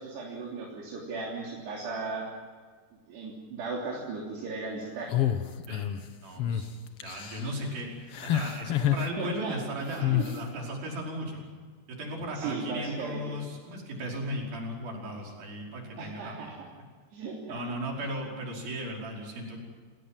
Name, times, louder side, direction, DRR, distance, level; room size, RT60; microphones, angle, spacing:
voice 1, 0.0-2.3 3.1-5.2 9.2-9.6 10.1-10.2 12.3-13.2 16.0-16.5 17.1-17.6, right 4 dB, 75° right, -3 dB, 5.4 m, -36 dB
sound 1, 5.1-6.0 6.4-6.6 7.0-7.5 8.1-9.1 10.0-10.4, left 12 dB, 80° left, 1.3 m, -28 dB
voice 2, 6.2-11.4 11.9-16.8 17.5-19.6, equal, 60° right, -1 dB, 6.9 m, -36 dB
29.0 x 19.5 x 7.6 m, 1.6 s
omnidirectional pair, 4.8 m